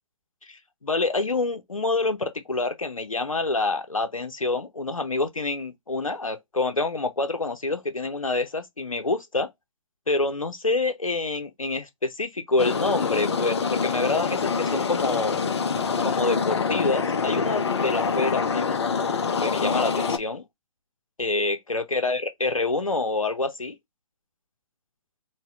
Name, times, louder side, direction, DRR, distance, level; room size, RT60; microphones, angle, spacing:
voice 1, 0.5-9.5 10.1-15.4 16.0-18.8 19.4-20.4 21.2-23.8, left 3 dB, 90° left, 0.7 m, -27 dB
sound 1, 12.6-20.2, left 5 dB, 55° left, 0.6 m, -25 dB
4.1 x 2.2 x 2.3 m
figure-of-eight pair, 140°, 17 cm